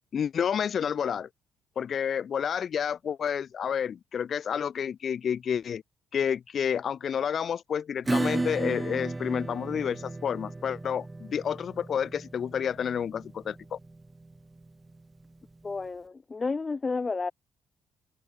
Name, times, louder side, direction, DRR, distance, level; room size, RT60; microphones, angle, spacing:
voice 1, 0.1-1.3 1.8-5.8 6.1-13.8, left 8 dB, 55° left, 2.0 m, -30 dB
Acoustic guitar / Strum, 8.1-15.3, right 2 dB, 20° right, 4.5 m, -34 dB
voice 2, 15.6-17.3, left 4 dB, 30° left, 0.8 m, -31 dB
cardioid pair, 90°, 0 cm